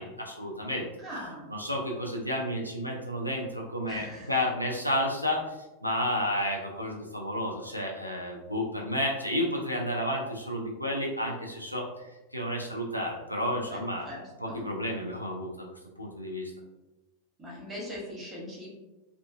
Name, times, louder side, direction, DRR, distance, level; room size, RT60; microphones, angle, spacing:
voice 1, 0.0-0.8 1.5-14.1 14.4-15.7 16.0-16.5, equal, 90° right, -1 dB, 0.3 m, -31 dB
voice 2, 1.0-1.5 3.8-4.3 13.7-14.7 17.4-18.7, equal, 15° right, -6 dB, 1.0 m, -41 dB
2.4 x 2.2 x 2.4 m, 1.1 s
figure-of-eight pair, 90°, 0 cm